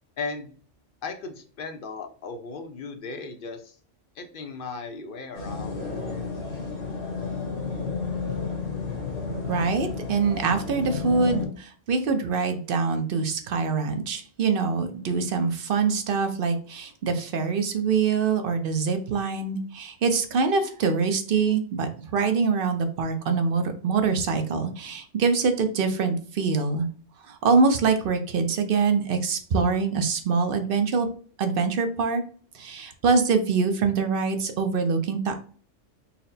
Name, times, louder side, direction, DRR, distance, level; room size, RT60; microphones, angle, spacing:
voice 1, 0.2-0.5 1.0-3.8 4.2-5.8, left 4 dB, 55° left, 6 dB, 0.7 m, -36 dB
sound 1, 5.3-11.5, left 4 dB, 75° left, 1.3 m, -31 dB
voice 2, 9.3-26.9 27.2-31.1 31.4-32.2 32.5-35.4, right 5 dB, 55° right, 6 dB, 0.7 m, -24 dB
4.2 x 2.1 x 4.0 m, 0.43 s
omnidirectional pair, 1.3 m